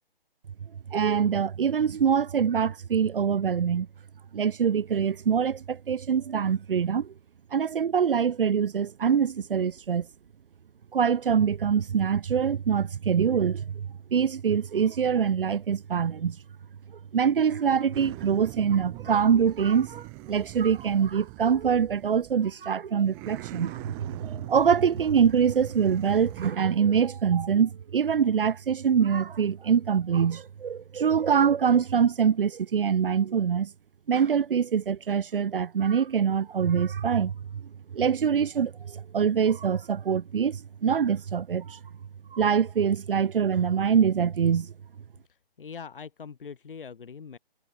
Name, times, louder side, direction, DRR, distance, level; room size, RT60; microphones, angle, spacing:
voice 1, 0.9-3.9 4.3-7.1 7.5-10.1 10.9-16.4 17.1-33.7 34.1-37.3 37.9-41.8 42.3-44.7, right 7 dB, 65° right, 0.8 m, -24 dB
sound 1, 17.9-22.6 23.0-26.5, right 32 dB, 10° right, 0.8 m, -42 dB
sound 2, 24.8-30.6, right 9 dB, 40° right, 5.8 m, -63 dB
voice 2, 45.3-47.4, left 6 dB, 65° left, 2.0 m, -42 dB
hypercardioid pair, 165°, 30 cm